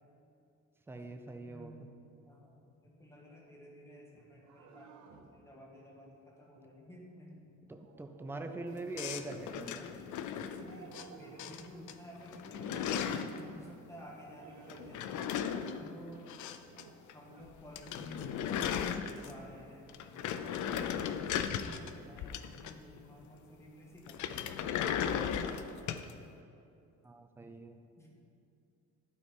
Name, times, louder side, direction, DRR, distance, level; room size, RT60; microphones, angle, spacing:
voice 1, 0.9-1.8 7.7-9.9 27.0-27.8, right 2 dB, 10° right, 5 dB, 0.4 m, -43 dB
voice 2, 1.4-1.8 2.2-7.4 10.4-15.3 15.8-16.3 17.1-25.2 28.0-28.1, equal, 10° left, -3 dB, 1.5 m, -52 dB
sound 1, 4.1-5.3 7.8-9.1 10.6-11.7 12.6-13.6 14.3-15.1 15.4-15.7 16.0-16.4 16.7-17.5 17.9-18.7, right 6 dB, 75° right, 0.7 m, -55 dB
sound 2, 9.0-11.1 11.4-11.9 12.2-13.4 14.7-16.8 17.1-17.2 17.5-17.6 17.7-19.5 19.9-23.0 24.1-26.1, left 8 dB, 80° left, 0.5 m, -36 dB
12.0 x 4.1 x 5.3 m, 2.6 s
cardioid pair, 160°, 29 cm